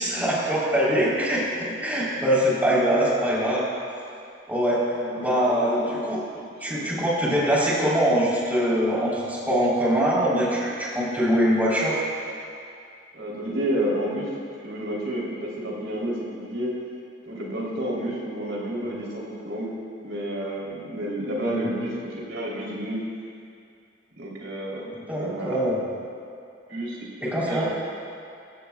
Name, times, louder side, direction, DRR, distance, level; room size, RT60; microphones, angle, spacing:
voice 1, 0.0-3.6 4.5-4.8 5.2-6.2 6.6-12.0 21.5-21.8 25.1-25.9 27.2-27.7, equal, 10° right, -7 dB, 3.8 m, -23 dB
voice 2, 5.0-5.8 6.3-6.9 13.1-16.8 17.2-19.8 20.0-23.0 24.2-25.6 26.7-27.6, right 1 dB, 75° right, -4 dB, 3.5 m, -31 dB
24.5 x 15.5 x 2.4 m, 2.4 s
head